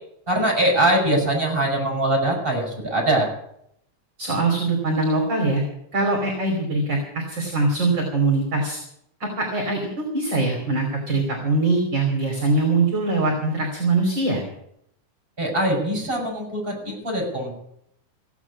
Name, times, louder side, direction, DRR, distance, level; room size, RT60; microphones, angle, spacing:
voice 1, 0.3-3.3 15.4-17.5, right 1 dB, 15° right, 0 dB, 6.2 m, -22 dB
voice 2, 4.2-5.6 5.9-8.8 9.2-14.4, right 3 dB, 35° right, 1 dB, 3.4 m, -22 dB
16.0 x 8.2 x 8.5 m, 0.72 s
omnidirectional pair, 3.5 m